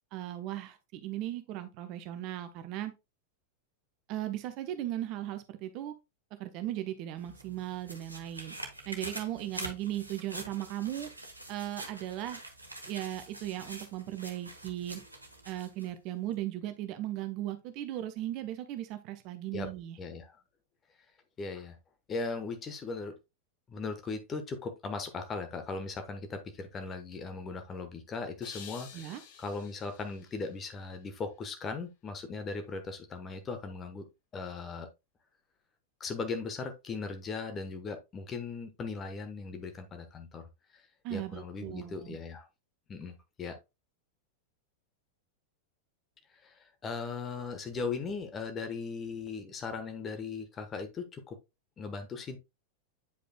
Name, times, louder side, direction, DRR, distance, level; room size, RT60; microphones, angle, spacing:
voice 1, 0.1-2.9 4.1-5.9 6.4-8.5 8.9-11.1 11.5-12.4 12.8-15.0 15.4-20.0 28.9-29.2 41.0-42.2, right 13 dB, 40° right, 0.8 m, -37 dB
sound 1, 7.2-15.9 16.3-16.4, right 1 dB, 85° right, 1.1 m, -45 dB
voice 2, 20.0-20.4 21.4-21.8 22.1-23.1 23.7-34.0 34.3-34.9 36.0-40.5 40.7-40.8 41.1-42.5 42.9-43.5 46.4-51.4 51.8-52.4, left 4 dB, 25° left, 1.2 m, -38 dB
sound 2, 28.4-31.6, left 7 dB, 50° left, 1.1 m, -52 dB
8.5 x 5.1 x 2.2 m
figure-of-eight pair, 90°, 0 cm